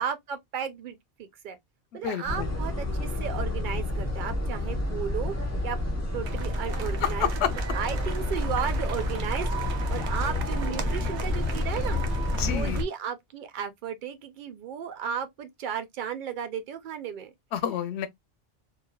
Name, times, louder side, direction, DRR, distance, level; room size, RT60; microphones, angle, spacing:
voice 1, 0.0-1.6 1.9-5.3 5.6-5.8 6.1-7.3 7.7-12.0 12.4-17.3, right 8 dB, 55° right, 0.6 m, -34 dB
voice 2, 1.9-2.6 6.8-7.5 12.3-12.8 17.5-18.1, left 9 dB, 75° left, 0.8 m, -29 dB
sound 1, 2.2-12.8, left 1 dB, 15° left, 0.8 m, -29 dB
sound 2, 6.2-12.8, right 7 dB, 80° right, 0.9 m, -39 dB
3.2 x 2.3 x 2.2 m
omnidirectional pair, 1.2 m